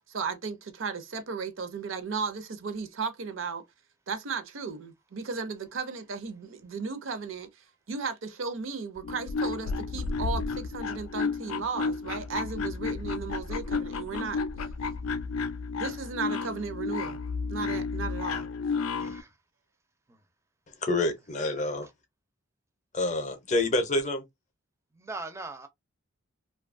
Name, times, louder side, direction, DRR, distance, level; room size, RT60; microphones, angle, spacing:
voice 1, 0.1-3.6 4.1-7.5 7.9-14.4 15.8-17.2 17.5-18.5, right 5 dB, 65° right, 0.5 m, -35 dB
sound 1, 9.0-19.2, left 4 dB, 90° left, 0.4 m, -32 dB
voice 2, 19.0-19.3 24.9-25.7, right 3 dB, 15° right, 0.4 m, -40 dB
voice 3, 20.8-21.9 22.9-24.2, left 2 dB, 35° left, 0.5 m, -27 dB
2.6 x 2.3 x 2.5 m
head